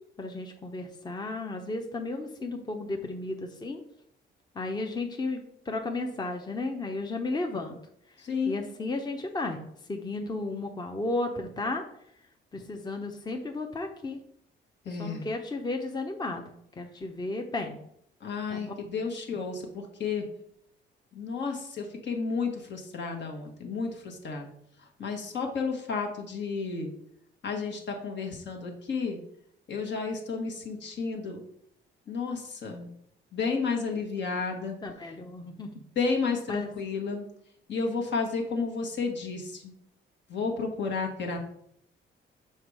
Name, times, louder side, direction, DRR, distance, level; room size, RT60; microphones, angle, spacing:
voice 1, 0.2-3.8 4.5-7.8 8.5-9.6 9.9-11.8 12.5-14.2 14.9-16.4 16.8-17.8 18.5-18.7 34.8-35.8 36.5-36.7, left 2 dB, 20° left, 4 dB, 0.7 m, -33 dB
voice 2, 8.2-8.6 14.8-15.3 18.2-20.2 21.1-24.5 24.8-26.9 27.4-29.2 29.7-31.4 32.1-32.9 33.3-34.8 35.9-37.3 37.7-39.7 40.3-41.4, left 4 dB, 60° left, 2 dB, 1.5 m, -32 dB
5.8 x 4.4 x 4.8 m, 0.72 s
cardioid pair, 90°, 20 cm